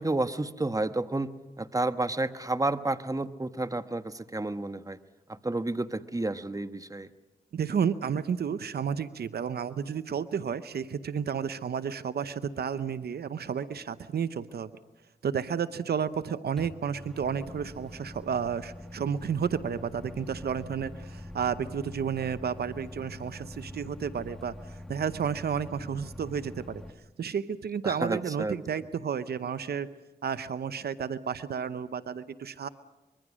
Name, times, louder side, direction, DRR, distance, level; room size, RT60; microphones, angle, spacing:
voice 1, 0.0-5.0 5.3-7.1 27.8-28.8, right 2 dB, 20° right, 11 dB, 1.2 m, -31 dB
voice 2, 7.5-14.7 15.2-26.8 27.2-29.9 30.2-32.7, right 7 dB, 85° right, 14 dB, 0.8 m, -32 dB
Microwave oven, 16.6-26.9, left 1 dB, 5° left, 1.6 m, -44 dB
25.0 x 23.0 x 6.2 m, 1.1 s
cardioid pair, 45°, 16 cm